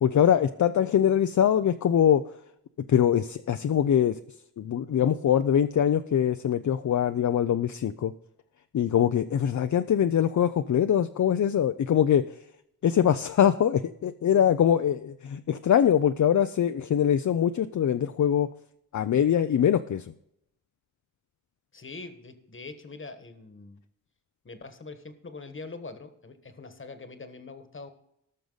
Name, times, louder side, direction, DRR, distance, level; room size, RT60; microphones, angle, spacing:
voice 1, 0.0-2.2 2.9-4.2 4.6-8.1 8.7-12.3 12.8-18.5 18.9-20.1, left 9 dB, 60° left, 9 dB, 0.5 m, -23 dB
voice 2, 21.7-23.8 24.4-27.9, left 3 dB, 35° left, 9 dB, 1.3 m, -43 dB
18.0 x 6.6 x 3.9 m, 0.78 s
wide cardioid pair, 125°, 33 cm